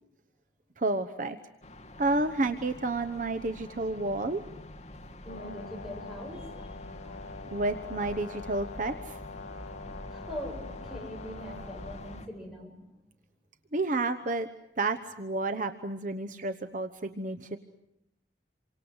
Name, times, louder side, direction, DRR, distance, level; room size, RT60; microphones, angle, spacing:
voice 1, 0.8-1.4 2.0-4.4 7.5-9.2 13.7-14.5 14.8-17.6, right 2 dB, 45° right, 8 dB, 1.0 m, -30 dB
sound 1, 1.6-12.3, left 1 dB, 40° left, 2.1 m, -45 dB
voice 2, 5.2-6.8 7.0-7.4 8.8-8.9 10.0-12.8, left 1 dB, ahead, -1 dB, 7.3 m, -43 dB
Brass instrument, 5.3-12.3, left 4 dB, 80° left, 1.5 m, -45 dB
28.5 x 25.0 x 8.0 m, 0.83 s
head